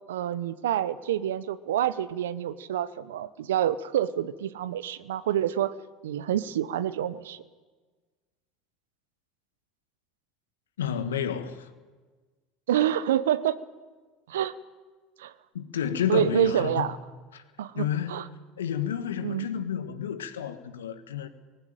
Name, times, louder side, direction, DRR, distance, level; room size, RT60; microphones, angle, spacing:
voice 1, 0.1-5.7 6.0-7.4 12.7-13.6 14.3-14.5 15.2-15.3 16.1-17.0 17.6-18.2 19.2-19.5, right 11 dB, 75° right, 0.8 m, -27 dB
voice 2, 10.8-11.7 15.5-16.9 17.3-17.4 17.7-18.2 18.6-21.3, left 9 dB, 80° left, 1.5 m, -30 dB
19.5 x 15.5 x 9.1 m
hypercardioid pair, 75°, 0 cm